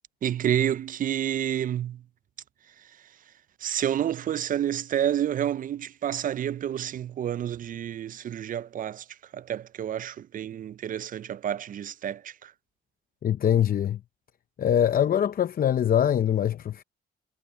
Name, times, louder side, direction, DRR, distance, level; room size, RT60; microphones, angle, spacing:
voice 1, 0.2-2.0 2.8-2.9 3.6-12.5, right 10 dB, 45° right, 0.4 m, -29 dB
voice 2, 13.2-14.0 14.6-16.8, left 10 dB, 50° left, 0.7 m, -23 dB
cardioid pair, 90°, 20 cm